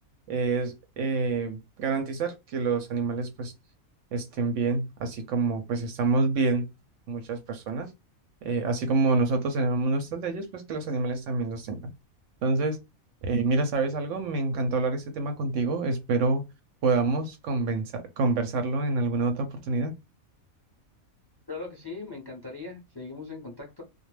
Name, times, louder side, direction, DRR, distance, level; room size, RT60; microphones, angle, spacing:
voice 1, 0.3-3.5 4.1-6.7 7.1-7.9 8.4-11.8 12.4-12.8 13.2-16.4 16.8-19.9, right 3 dB, 70° right, 0.8 m, -27 dB
voice 2, 21.5-23.8, left 3 dB, 30° left, 0.4 m, -39 dB
2.3 x 2.0 x 3.0 m
omnidirectional pair, 1.5 m